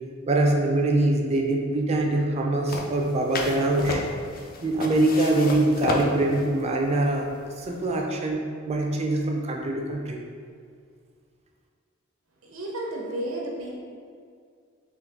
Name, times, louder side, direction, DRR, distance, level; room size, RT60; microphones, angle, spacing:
voice 1, 0.3-4.0 4.6-7.2 7.6-10.2, right 2 dB, 30° right, 1 dB, 0.4 m, -24 dB
sound 1, 2.7-8.0, left 2 dB, 45° left, 0.4 m, -32 dB
voice 2, 12.4-13.8, right 1 dB, 75° right, -2 dB, 0.8 m, -32 dB
3.8 x 3.1 x 3.5 m, 2.2 s
head